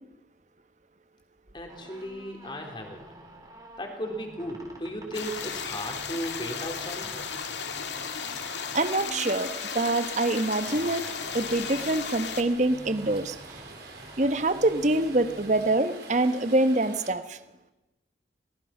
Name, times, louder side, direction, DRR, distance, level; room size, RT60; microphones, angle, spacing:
voice 1, 1.5-3.0 3.8-7.2, equal, 25° left, 3 dB, 3.5 m, -36 dB
sound 1, 1.6-16.1, right 1 dB, 20° right, 3.2 m, -48 dB
sound 2, 5.1-12.4, left 6 dB, 85° left, 2.0 m, -35 dB
voice 2, 8.7-11.0 11.3-13.4 14.2-17.4, right 2 dB, 40° right, 11 dB, 1.1 m, -25 dB
Rain, 9.1-17.1, right 3 dB, 70° right, 4.9 m, -46 dB
23.0 x 19.0 x 5.9 m, 1.0 s
head